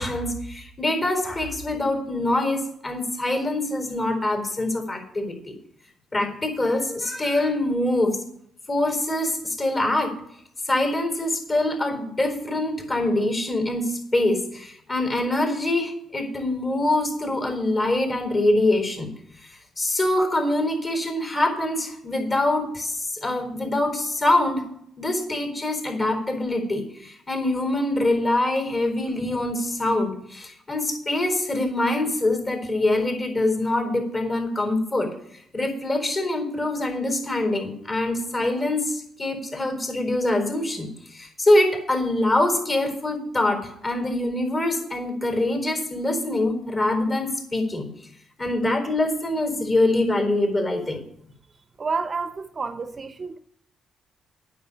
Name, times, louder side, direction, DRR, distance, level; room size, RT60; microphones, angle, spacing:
voice 1, 0.0-5.5 6.1-8.2 8.7-10.2 10.7-19.1 19.4-24.6 25.0-47.9 48.4-51.0, left 1 dB, 35° left, 4.1 m, -24 dB
voice 2, 51.8-53.4, right 4 dB, 35° right, 0.6 m, -29 dB
9.4 x 6.8 x 8.3 m
cardioid pair, 90°, 0 cm